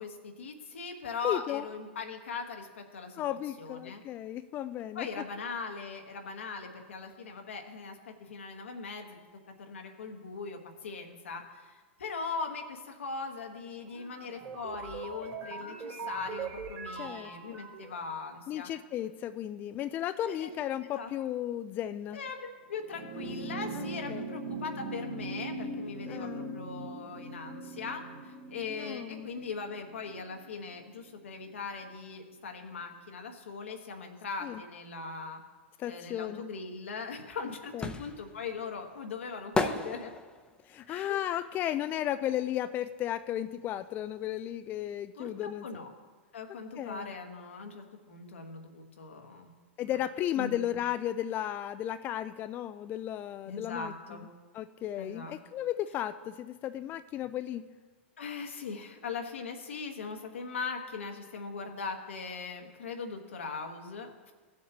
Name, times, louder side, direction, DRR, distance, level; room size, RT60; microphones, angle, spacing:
voice 1, 0.0-3.2 3.6-4.0 4.9-9.2 9.6-18.7 20.3-20.5 20.9-21.1 22.1-35.4 35.9-40.1 40.9-41.2 45.2-45.9 46.3-49.5 50.3-50.8 53.5-54.2 55.0-55.3 58.2-64.3, left 4 dB, 85° left, 3 dB, 1.4 m, -40 dB
voice 2, 1.2-1.7 3.1-5.1 16.9-17.6 18.5-22.2 23.7-24.3 26.1-26.6 28.7-29.3 34.4-34.6 35.8-36.5 37.5-37.9 40.7-45.8 46.8-47.1 49.8-54.3 54.5-57.6, left 12 dB, 30° left, 11 dB, 0.3 m, -35 dB
sound 1, 13.9-18.1, right 5 dB, 70° right, 2.2 m, -41 dB
sound 2, 22.8-31.5 32.7-32.8, right 2 dB, 50° right, 1.6 m, -41 dB
sound 3, 36.9-42.8 43.1-44.7 44.9-45.0, left 3 dB, 10° left, 0.7 m, -36 dB
16.0 x 7.3 x 3.0 m, 1.4 s
hypercardioid pair, 120°, 7 cm